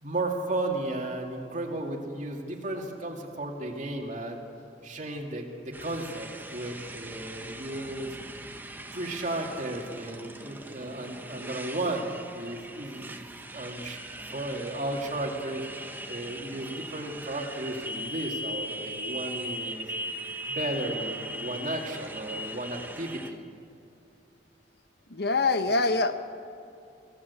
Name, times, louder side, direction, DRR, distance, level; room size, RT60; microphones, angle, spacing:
voice 1, 0.0-4.4 4.8-8.2 8.9-14.0 14.3-19.9 20.5-23.4, right 2 dB, 45° right, 1 dB, 2.4 m, -34 dB
Motorcycle, 5.7-23.3, equal, 10° right, 1.2 m, -39 dB
voice 2, 25.1-26.2, left 3 dB, 60° left, 9 dB, 1.3 m, -24 dB
25.5 x 16.5 x 8.4 m, 2.5 s
head